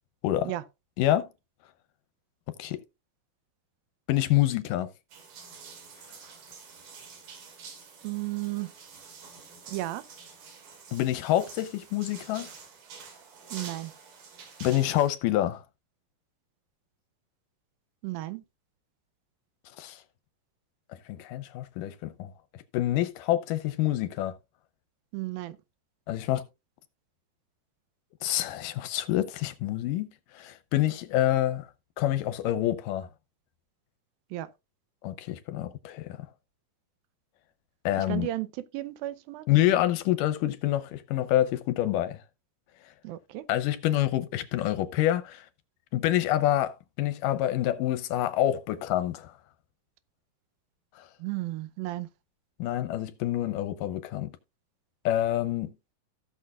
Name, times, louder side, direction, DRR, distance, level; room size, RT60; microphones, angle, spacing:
voice 1, 1.0-1.3 2.6-2.8 4.1-4.9 10.9-12.5 14.6-15.6 19.8-20.0 21.2-24.3 26.1-26.4 28.2-30.1 30.3-31.7 32.0-33.1 35.0-36.2 37.9-38.3 39.5-42.2 43.5-45.5 45.9-49.3 51.0-51.1 52.6-54.3 55.1-55.7, left 13 dB, 80° left, 2.2 m, -27 dB
sound 1, 5.1-15.1, right 5 dB, 65° right, 3.6 m, -48 dB
voice 2, 8.0-8.7 9.7-10.1 13.5-13.9 18.0-18.4 25.1-25.6 34.3-34.5 37.9-39.5 43.0-43.5 51.2-52.1, right 17 dB, 85° right, 2.5 m, -34 dB
16.5 x 6.4 x 2.4 m
omnidirectional pair, 4.1 m